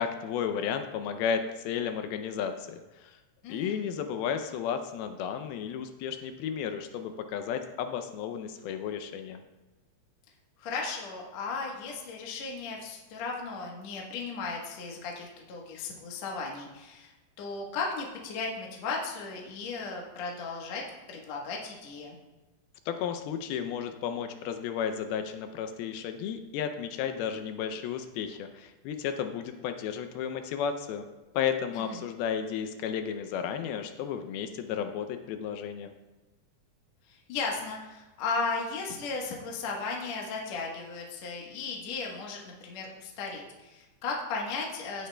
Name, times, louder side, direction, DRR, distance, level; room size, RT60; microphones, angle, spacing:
voice 1, 0.0-3.2 3.5-9.4 22.9-31.1 31.3-35.9, left 8 dB, 80° left, 7 dB, 2.3 m, -33 dB
voice 2, 3.4-3.8 10.6-20.8 21.1-22.2 31.7-32.0 37.1-45.1, left 4 dB, 65° left, -1 dB, 1.7 m, -36 dB
17.0 x 8.3 x 2.2 m, 1.1 s
omnidirectional pair, 4.8 m